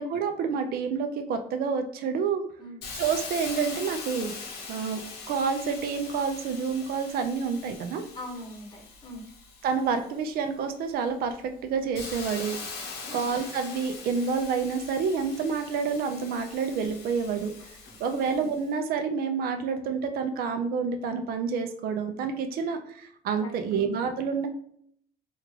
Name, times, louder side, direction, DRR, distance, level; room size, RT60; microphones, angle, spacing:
voice 1, 0.0-2.4 2.9-4.3 4.7-5.0 5.3-8.1 9.6-12.6 13.1-17.5 18.0-24.5, right 5 dB, 65° right, 6 dB, 0.5 m, -28 dB
Hiss, 2.8-10.4 10.9-18.6, left 4 dB, 85° left, 0.8 m, -42 dB
voice 2, 8.1-9.2 12.9-13.2 17.9-18.2 23.4-23.9, left 1 dB, 25° left, 1 dB, 0.9 m, -42 dB
3.5 x 2.4 x 3.1 m, 0.66 s
cardioid pair, 110°, 17 cm